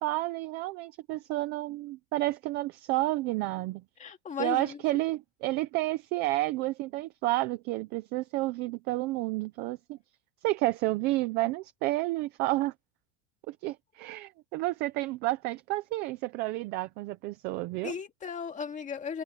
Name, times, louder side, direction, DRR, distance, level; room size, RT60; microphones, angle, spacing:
voice 1, 0.0-3.8 4.4-10.0 10.4-12.7 13.5-17.9, right 19 dB, 25° right, 0.3 m, -30 dB
voice 2, 4.0-5.0 17.8-19.2, left 6 dB, 15° left, 2.0 m, -36 dB
supercardioid pair, 170°, 43 cm